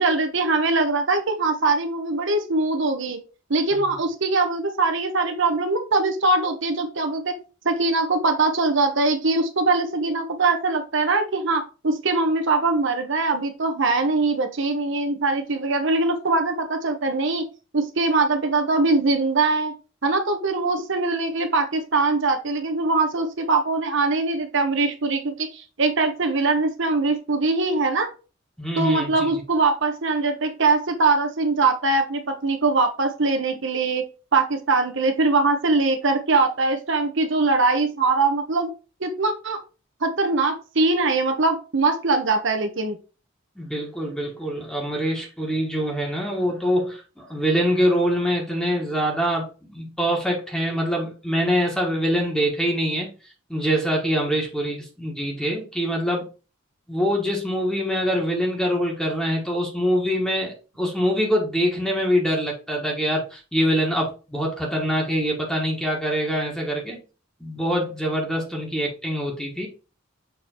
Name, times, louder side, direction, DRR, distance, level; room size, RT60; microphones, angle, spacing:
voice 1, 0.0-3.2 3.5-7.4 7.6-17.4 17.7-19.7 20.0-28.1 28.8-34.0 34.3-38.7 39.0-39.6 40.0-43.0, right 3 dB, 65° right, 5 dB, 1.0 m, -22 dB
voice 2, 28.6-29.4 43.6-53.1 53.5-56.3 56.9-67.0 67.4-69.7, equal, 5° left, -1 dB, 1.4 m, -24 dB
6.9 x 3.3 x 4.4 m, 0.34 s
head